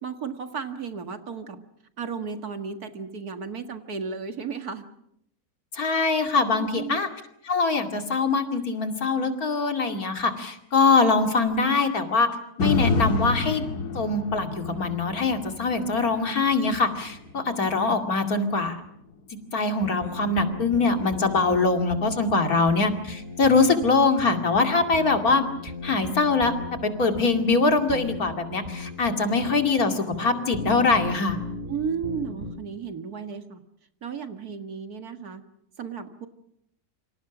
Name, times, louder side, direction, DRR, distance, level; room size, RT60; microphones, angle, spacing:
voice 1, 0.0-1.6 2.0-4.9 6.6-7.0 31.7-33.6 34.0-35.4 35.8-36.3, right 6 dB, 70° right, 7 dB, 2.3 m, -34 dB
voice 2, 5.7-7.1 7.4-12.3 12.6-13.6 13.9-18.8 19.5-26.5 26.8-31.4, left 3 dB, 65° left, 5 dB, 2.9 m, -23 dB
sound 1, 12.6-20.8 21.2-21.3, left 3 dB, 80° left, 2.3 m, -31 dB
sound 2, 19.8-32.5, left 2 dB, 30° right, 4.5 m, -37 dB
28.0 x 25.5 x 6.1 m, 0.76 s
omnidirectional pair, 1.7 m